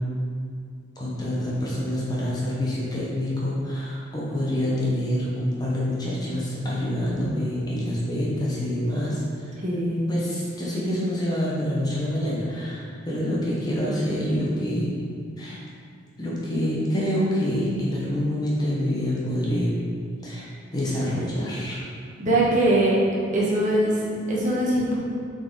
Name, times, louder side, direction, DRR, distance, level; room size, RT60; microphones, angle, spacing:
voice 1, 1.0-9.5 10.1-15.0 15.4-15.6 16.2-19.8 20.2-21.8, equal, 20° left, -6 dB, 1.0 m, -26 dB
voice 2, 9.6-10.0 22.2-23.0 23.3-24.0 24.3-25.0, right 1 dB, 40° right, -5 dB, 1.2 m, -21 dB
6.6 x 4.0 x 4.0 m, 2.2 s
head